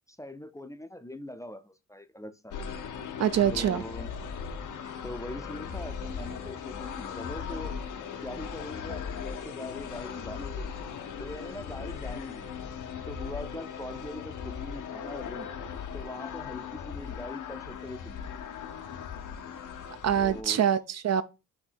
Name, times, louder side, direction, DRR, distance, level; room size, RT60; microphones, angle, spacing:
voice 1, 0.1-2.5 3.5-4.1 5.0-7.7 8.2-10.7 11.2-12.6 13.1-15.5 15.9-18.3 20.1-20.6, left 1 dB, 10° left, 0.5 m, -42 dB
sound 1, 2.5-20.4, left 7 dB, 65° left, 0.7 m, -38 dB
voice 2, 3.2-3.8 20.0-21.2, right 9 dB, 50° right, 0.4 m, -25 dB
4.2 x 2.7 x 4.4 m
cardioid pair, 55°, 33 cm